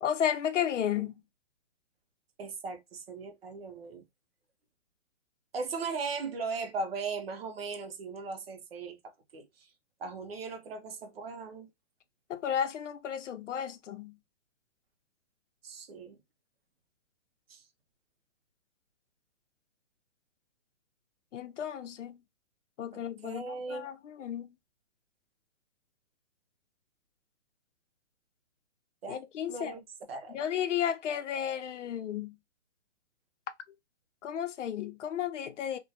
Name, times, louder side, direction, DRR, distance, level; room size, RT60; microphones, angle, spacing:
voice 1, 0.0-1.1 12.3-14.1 21.3-22.2 22.8-24.5 29.1-29.7 30.3-32.3 34.2-35.8, left 9 dB, 80° left, 0.5 m, -33 dB
voice 2, 2.4-4.0 5.5-9.0 9.3-9.7 10.0-11.7 15.6-16.2 17.5-17.6 22.9-23.9 29.0-29.2 29.5-30.4, right 4 dB, 55° right, 0.6 m, -38 dB
2.1 x 2.1 x 2.7 m
hypercardioid pair, 170°, 36 cm